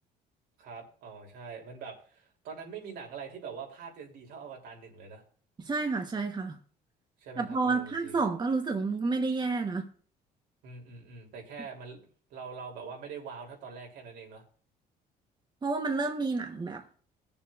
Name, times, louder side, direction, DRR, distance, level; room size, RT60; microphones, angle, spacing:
voice 1, 0.6-5.2 7.2-8.2 10.6-12.0 12.3-14.4, right 5 dB, 85° right, 0 dB, 3.2 m, -44 dB
voice 2, 5.6-6.6 7.4-9.9 15.6-16.8, right 4 dB, 25° right, 4 dB, 1.1 m, -30 dB
21.0 x 7.1 x 2.5 m, 0.43 s
cardioid pair, 110°, 17 cm